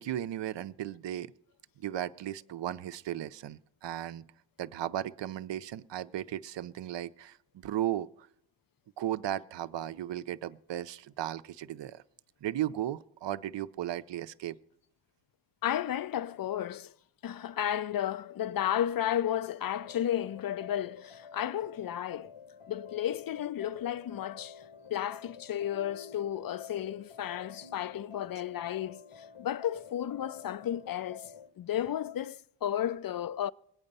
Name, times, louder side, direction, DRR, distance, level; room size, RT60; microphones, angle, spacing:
voice 1, 0.0-1.3 1.8-4.3 4.6-8.3 9.0-12.0 12.4-14.6, right 12 dB, 65° right, 0.6 m, -36 dB
voice 2, 15.6-16.9 17.2-22.3 22.7-24.6 24.9-31.3 31.6-33.5, left 11 dB, 50° left, 0.5 m, -33 dB
sound 1, 19.6-31.5, left 6 dB, 85° left, 1.8 m, -50 dB
21.0 x 8.8 x 5.4 m
cardioid pair, 75°, 47 cm